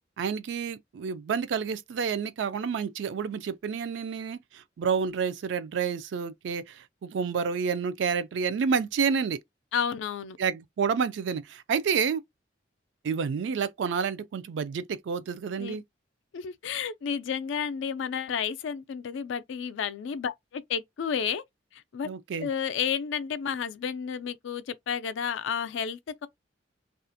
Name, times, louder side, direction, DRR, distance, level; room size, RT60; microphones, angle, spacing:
voice 1, 0.2-9.4 10.4-12.2 13.0-15.8 22.0-22.5, right 6 dB, 65° right, 0.3 m, -29 dB
voice 2, 9.7-10.4 15.6-15.8 16.3-21.4 21.7-22.1 22.4-26.3, left 7 dB, 75° left, 0.3 m, -31 dB
2.4 x 2.0 x 2.6 m
head